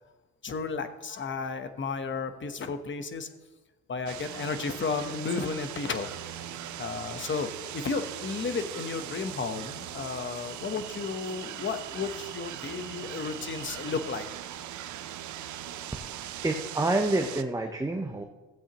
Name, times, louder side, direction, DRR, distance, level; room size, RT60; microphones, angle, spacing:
voice 1, 0.4-3.3 3.9-6.1 6.8-14.2, left 5 dB, 40° left, 8 dB, 1.1 m, -33 dB
sound 1, 4.1-17.4, right 11 dB, 70° right, 0.7 m, -40 dB
voice 2, 16.4-18.2, right 2 dB, 10° right, 3 dB, 0.8 m, -28 dB
15.5 x 8.0 x 3.0 m, 1.2 s
cardioid pair, 90°, 30 cm